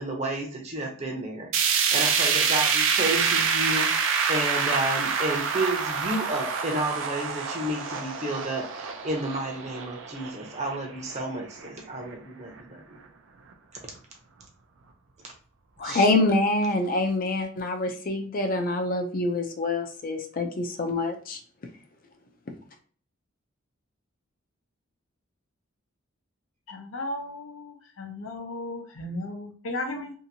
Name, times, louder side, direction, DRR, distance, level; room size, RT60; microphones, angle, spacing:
voice 1, 0.0-13.0 15.8-16.1, right 1 dB, 35° right, 2 dB, 0.7 m, -31 dB
sound 1, 1.5-11.7 12.1-12.2 12.6-12.7 13.5-13.6, right 6 dB, 70° right, 0.4 m, -27 dB
voice 2, 15.8-21.4, left 2 dB, 45° left, 5 dB, 0.5 m, -26 dB
voice 3, 26.7-30.1, left 2 dB, 85° left, 3 dB, 0.7 m, -35 dB
2.7 x 2.6 x 2.7 m, 0.43 s
head